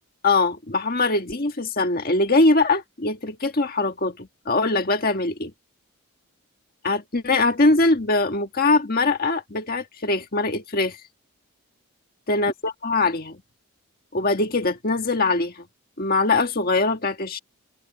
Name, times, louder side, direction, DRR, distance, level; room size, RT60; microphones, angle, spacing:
voice 1, 0.2-5.5 6.8-11.0 12.3-13.4 14.1-15.6 16.0-17.4, left 3 dB, 40° left, 1.7 m, -22 dB
head